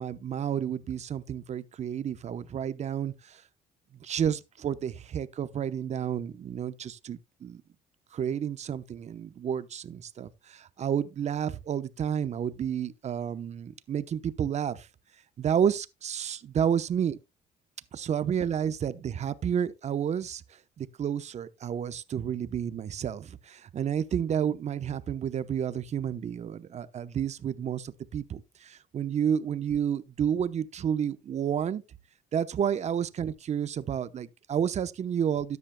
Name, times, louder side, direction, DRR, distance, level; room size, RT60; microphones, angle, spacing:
voice 1, 0.0-3.4 4.0-7.6 8.1-14.9 15.4-17.2 17.9-20.4 20.8-31.8 32.3-35.6, right 8 dB, 40° right, 0.8 m, -30 dB
13.0 x 9.7 x 2.2 m
cardioid pair, 110°, 17 cm